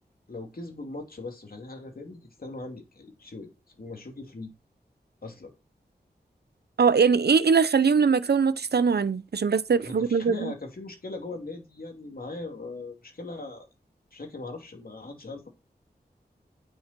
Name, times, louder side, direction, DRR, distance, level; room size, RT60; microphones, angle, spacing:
voice 1, 0.3-3.5 3.8-4.5 5.2-5.5 9.8-13.7 14.1-15.5, left 2 dB, 60° left, 3.1 m, -39 dB
voice 2, 6.8-10.5, right 5 dB, 70° right, 0.7 m, -22 dB
9.6 x 7.1 x 4.5 m
wide cardioid pair, 75°, 17 cm